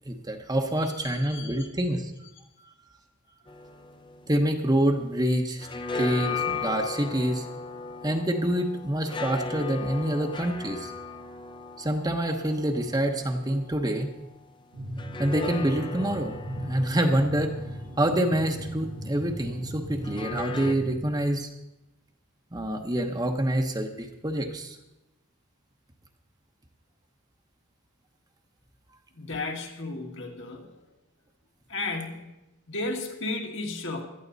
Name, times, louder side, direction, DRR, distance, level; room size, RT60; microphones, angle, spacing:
voice 1, 0.1-2.1 4.3-5.7 5.9-7.5 8.0-10.9 11.8-14.1 15.2-17.5 18.0-21.5 22.5-24.8, right 1 dB, 20° right, 4 dB, 1.0 m, -26 dB
voice 2, 1.0-1.7 2.6-2.7 29.2-30.7 31.7-32.3 32.7-34.0, left 2 dB, 60° left, 1 dB, 2.1 m, -34 dB
sound 1, 3.5-5.1 5.4-14.1 15.0-19.1 20.0-20.7, left 4 dB, 25° left, 0.7 m, -37 dB
sound 2, 14.7-21.0, equal, 90° right, 2.0 m, -38 dB
17.0 x 13.0 x 4.1 m, 0.98 s
head